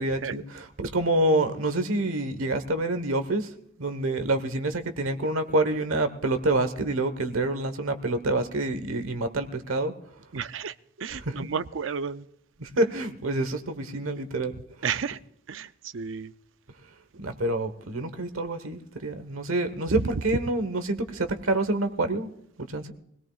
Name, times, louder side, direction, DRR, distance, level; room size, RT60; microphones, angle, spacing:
voice 1, 0.0-3.5 3.8-9.9 11.1-11.5 12.6-14.5 17.2-22.3 22.6-22.9, right 2 dB, 90° right, 1.3 m, -27 dB
voice 2, 10.3-12.2 14.8-15.2 15.5-16.3, right 6 dB, 70° right, 0.5 m, -32 dB
24.5 x 17.5 x 2.4 m
head